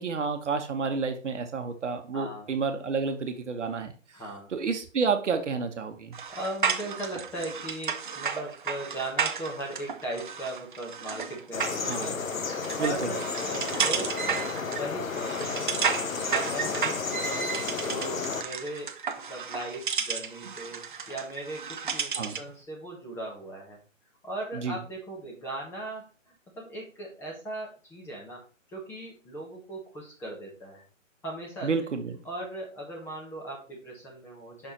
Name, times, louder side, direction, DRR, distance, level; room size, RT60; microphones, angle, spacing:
voice 1, 0.0-3.9 4.5-6.2 11.9-12.1 12.8-13.1 22.2-22.4 24.5-24.7 31.6-32.1, right 5 dB, 60° right, 7 dB, 1.1 m, -30 dB
voice 2, 2.1-2.5 4.1-4.5 6.3-14.2 14.6-15.8 16.2-19.0 19.3-23.8 24.2-28.4 28.7-30.8 31.2-31.7 32.2-34.7, right 1 dB, 5° left, -3 dB, 1.2 m, -38 dB
sound 1, 6.1-22.5, right 6 dB, 40° right, 0.6 m, -33 dB
sound 2, 11.5-18.4, left 5 dB, 90° left, 0.8 m, -32 dB
5.6 x 4.3 x 4.3 m, 0.36 s
figure-of-eight pair, 150°, 39 cm